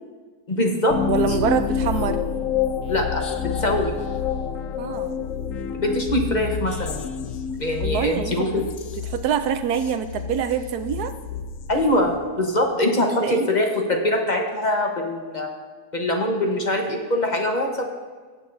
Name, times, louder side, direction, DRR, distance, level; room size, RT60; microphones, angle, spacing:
voice 1, 0.5-1.0 2.9-3.2 3.6-3.9 5.7-7.0 7.6-8.7 11.7-15.5 15.9-17.8, left 1 dB, 35° left, 2 dB, 1.0 m, -23 dB
sound 1, 0.9-12.5, left 7 dB, 65° left, 0.9 m, -28 dB
voice 2, 1.1-2.2 4.8-5.2 7.8-8.6 9.1-11.1 13.2-13.5, right 8 dB, 75° right, 9 dB, 1.1 m, -25 dB
18.0 x 7.7 x 2.6 m, 1.5 s
omnidirectional pair, 1.7 m